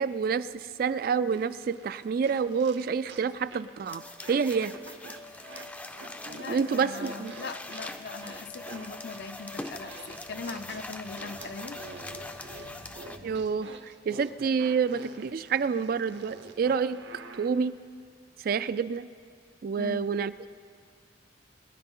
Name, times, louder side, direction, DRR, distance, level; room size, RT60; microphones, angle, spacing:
voice 1, 0.0-4.0 4.3-4.7 6.3-7.3 13.2-17.0 17.3-17.8 18.4-19.1 19.6-20.3, right 6 dB, 50° right, 14 dB, 0.3 m, -28 dB
Fart Combo Fast - Dry, 1.3-3.3 3.5-3.8 4.2-5.7 5.9-17.5, right 3 dB, 70° right, 0.8 m, -47 dB
sound 1, 3.9-13.2, left 2 dB, 10° left, 0.4 m, -42 dB
voice 2, 6.3-11.8 19.8-20.1, left 4 dB, 60° left, 11 dB, 0.5 m, -40 dB
sound 2, 7.1-13.5, equal, 80° left, 3.3 m, -55 dB
22.0 x 10.5 x 3.8 m, 2.1 s
head